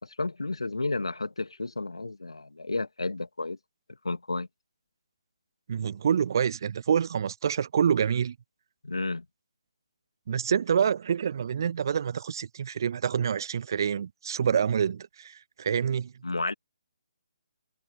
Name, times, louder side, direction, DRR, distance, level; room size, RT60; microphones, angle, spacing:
voice 1, 0.0-3.6 4.0-4.5 8.8-9.2 16.2-16.5, left 3 dB, 70° left, 2.5 m, -32 dB
voice 2, 5.7-8.4 10.3-16.1, right 7 dB, 45° right, 0.6 m, -27 dB
figure-of-eight pair, 140°, 3 cm